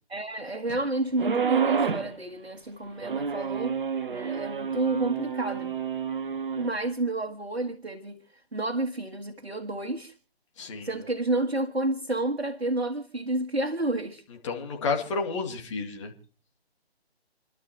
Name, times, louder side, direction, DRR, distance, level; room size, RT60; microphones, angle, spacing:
voice 1, 0.1-3.7 4.1-5.7 6.6-8.2 8.5-10.1 10.8-14.2, right 2 dB, 75° right, 1.6 m, -30 dB
sound 1, 1.2-2.1 3.0-6.7, right 6 dB, 50° right, 1.0 m, -29 dB
voice 2, 10.6-10.9 14.4-16.1, left 4 dB, 30° left, 2.3 m, -30 dB
30.0 x 12.0 x 2.9 m
figure-of-eight pair, 145°, 32 cm